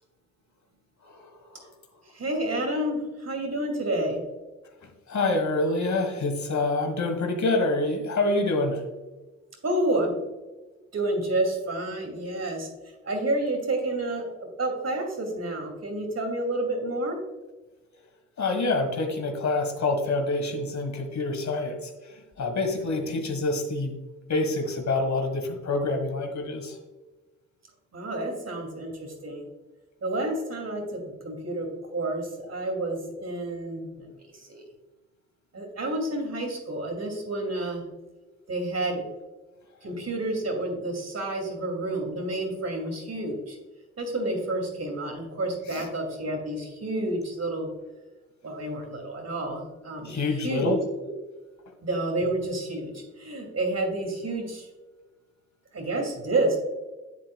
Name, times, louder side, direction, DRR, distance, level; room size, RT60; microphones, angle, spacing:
voice 1, 1.0-1.7 4.8-8.8 18.4-24.0 24.3-26.8 45.7-45.8 50.0-50.8, left 2 dB, 65° left, 5 dB, 1.6 m, -27 dB
voice 2, 2.1-4.2 9.6-10.2 10.9-12.7 13.0-17.2 27.9-29.5 30.0-34.6 35.5-37.8 38.5-39.0 39.8-43.6 44.0-47.7 48.4-50.7 51.8-54.7 55.7-56.6, right 1 dB, 55° right, 2 dB, 2.7 m, -29 dB
10.5 x 7.7 x 2.3 m, 1.2 s
cardioid pair, 50°, 31 cm